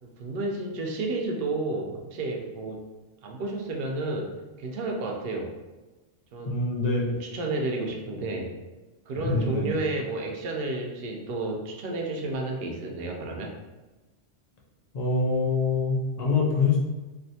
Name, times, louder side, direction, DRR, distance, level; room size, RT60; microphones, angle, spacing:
voice 1, 0.0-2.8 3.2-4.3 4.6-5.5 6.3-6.5 7.1-8.5 9.1-13.5, right 2 dB, 65° right, 0 dB, 0.7 m, -31 dB
voice 2, 6.4-7.1 9.2-9.7 14.9-16.8, left 4 dB, 45° left, -2 dB, 0.6 m, -25 dB
3.3 x 2.4 x 2.7 m, 1.2 s
omnidirectional pair, 1.1 m